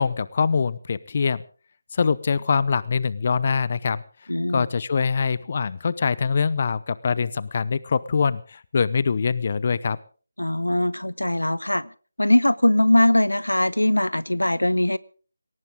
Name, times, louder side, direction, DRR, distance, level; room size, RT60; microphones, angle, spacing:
voice 1, 0.0-1.4 1.9-4.0 4.5-10.0, left 5 dB, 35° left, 19 dB, 0.7 m, -23 dB
voice 2, 4.3-4.7 10.4-11.9 12.2-15.0, left 1 dB, 80° left, 20 dB, 0.8 m, -21 dB
20.5 x 18.5 x 3.7 m, 0.40 s
figure-of-eight pair, 155°, 0 cm